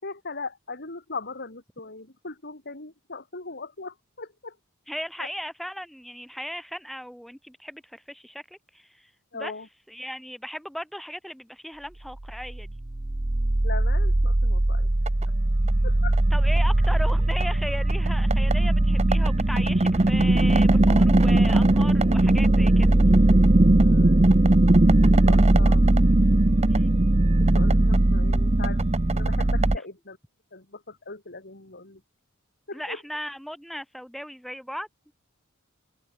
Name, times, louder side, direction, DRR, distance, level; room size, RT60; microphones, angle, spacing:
voice 1, 0.0-4.6 5.2-5.3 9.3-9.7 13.6-14.9 15.8-16.2 23.7-24.4 25.0-25.8 27.5-28.8 29.1-30.2 30.5-32.0 32.7-33.0, left 3 dB, 50° left, 5.1 m, -39 dB
voice 2, 4.9-9.5 9.9-12.8 16.3-22.9 26.7-26.9 32.7-35.1, equal, ahead, 4.7 m, -37 dB
sound 1, 12.4-29.8, right 1 dB, 30° right, 0.9 m, -19 dB
open air
head